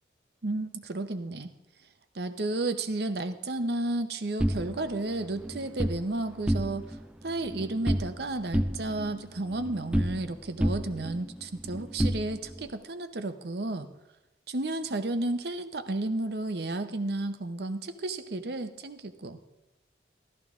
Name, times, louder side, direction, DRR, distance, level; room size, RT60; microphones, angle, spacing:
voice 1, 0.4-1.5 2.1-13.9 14.5-19.4, right 2 dB, 65° right, 10 dB, 0.8 m, -32 dB
sound 1, 4.4-6.0 6.4-7.0 7.3-8.2 8.5-10.3 10.6-12.7, equal, 5° right, 0.3 m, -30 dB
14.5 x 13.0 x 3.7 m, 0.98 s
head